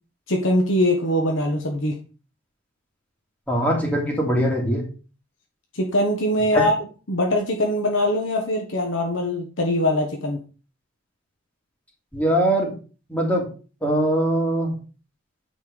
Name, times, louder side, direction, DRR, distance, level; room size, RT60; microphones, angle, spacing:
voice 1, 0.3-2.0 5.7-6.7 7.1-10.4, left 1 dB, 70° left, 2 dB, 1.4 m, -22 dB
voice 2, 3.5-4.8 6.5-6.6 12.1-12.7 13.1-13.5 13.8-14.8, right 1 dB, 10° left, -1 dB, 2.8 m, -21 dB
9.1 x 4.5 x 5.0 m, 0.36 s
head